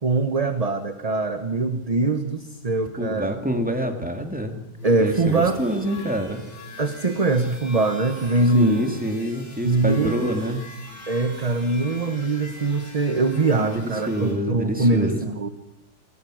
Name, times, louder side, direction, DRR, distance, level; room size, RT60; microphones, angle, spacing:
voice 1, 0.0-3.3 4.8-5.6 6.8-9.0 9.6-10.2 11.1-15.5, right 3 dB, 25° right, 8 dB, 1.0 m, -22 dB
voice 2, 3.0-4.6 5.0-6.4 8.5-10.6 13.6-15.2, right 1 dB, 5° right, 5 dB, 2.3 m, -26 dB
sound 1, 4.8-14.4, left 1 dB, 40° left, 4.4 m, -43 dB
28.0 x 19.5 x 6.4 m, 0.88 s
omnidirectional pair, 1.8 m